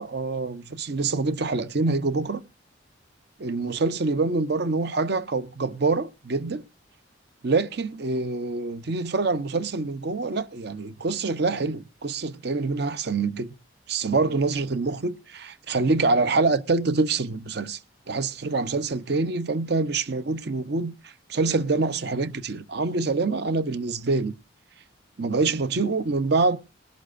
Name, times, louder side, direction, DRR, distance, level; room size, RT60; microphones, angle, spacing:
voice 1, 0.0-2.4 3.4-6.6 7.4-13.5 13.9-17.8 18.1-24.3 25.2-26.6, right 3 dB, 60° right, 0.7 m, -25 dB
19.5 x 11.5 x 2.5 m
head